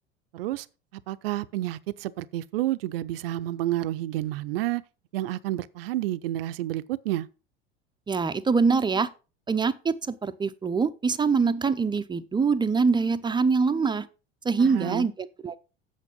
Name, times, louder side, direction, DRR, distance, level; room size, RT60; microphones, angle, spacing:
voice 1, 0.3-0.7 1.1-4.8 5.1-7.3 14.6-15.1, right 14 dB, 65° right, 0.6 m, -30 dB
voice 2, 8.1-9.1 9.5-14.1 14.4-15.6, right 5 dB, 15° right, 0.6 m, -24 dB
8.3 x 6.6 x 5.2 m
figure-of-eight pair, 75°, 31 cm